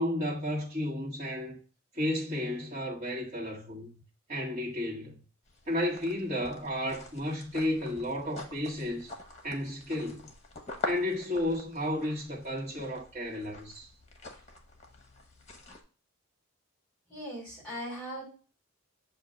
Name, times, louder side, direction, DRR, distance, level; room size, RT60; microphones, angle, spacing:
voice 1, 0.0-1.6 2.0-4.0 4.3-5.2 5.7-9.1 9.4-10.3 10.8-13.9, left 1 dB, 35° right, 1.7 m, -32 dB
sound 1, 5.5-15.8, left 2 dB, 30° left, 1.0 m, -45 dB
voice 2, 17.1-18.2, equal, 5° left, 3.3 m, -39 dB
7.0 x 2.6 x 5.1 m
head